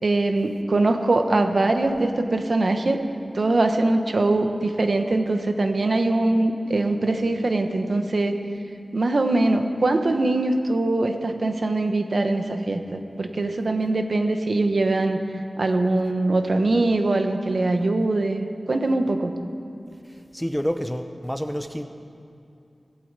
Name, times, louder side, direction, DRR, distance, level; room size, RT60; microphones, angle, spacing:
voice 1, 0.0-3.0 3.3-8.4 8.9-15.2 15.6-19.3, right 2 dB, 65° right, 6 dB, 1.2 m, -22 dB
voice 2, 20.3-21.8, equal, 5° left, 7 dB, 0.8 m, -28 dB
17.5 x 8.7 x 8.2 m, 2.6 s
wide cardioid pair, 80°, 0 cm